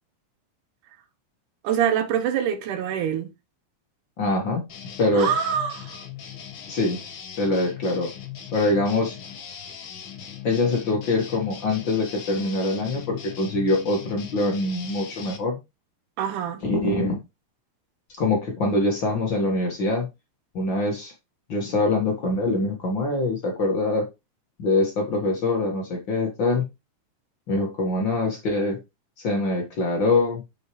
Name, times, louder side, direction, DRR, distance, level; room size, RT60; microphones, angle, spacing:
voice 1, 1.6-3.3 5.1-6.0 16.2-16.6, right 8 dB, 85° right, 2.5 m, -25 dB
voice 2, 4.2-4.6 5.0-5.3 6.7-7.0 7.4-8.1 8.5-9.2 10.4-15.6 16.6-17.2 18.2-20.1 20.5-21.1 21.5-24.1 24.6-26.7 27.5-28.8 29.2-30.4, left 2 dB, 45° left, 1.8 m, -24 dB
sound 1, 4.7-15.4, left 9 dB, 65° left, 1.2 m, -39 dB
7.2 x 6.7 x 3.1 m
omnidirectional pair, 3.6 m